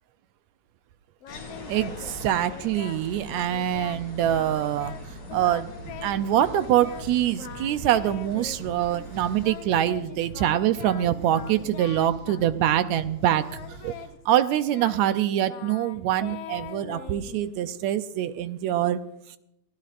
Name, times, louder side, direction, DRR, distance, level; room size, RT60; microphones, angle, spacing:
Singing, 1.2-3.0 3.3-4.0 4.3-5.0 5.3-7.1 7.4-8.8 9.4-13.0 13.3-17.7, left 9 dB, 65° left, 1.7 m, -42 dB
sound 1, 1.3-9.5, left 2 dB, 40° left, 4.6 m, -43 dB
voice 1, 1.7-4.9 5.3-5.7 6.0-13.5 13.8-13.9 14.3-19.0, right 12 dB, 75° right, 11 dB, 1.7 m, -24 dB
sound 2, 3.4-14.1, right 2 dB, 45° right, 8.0 m, -43 dB
24.0 x 16.0 x 2.5 m, 0.81 s
omnidirectional pair, 3.6 m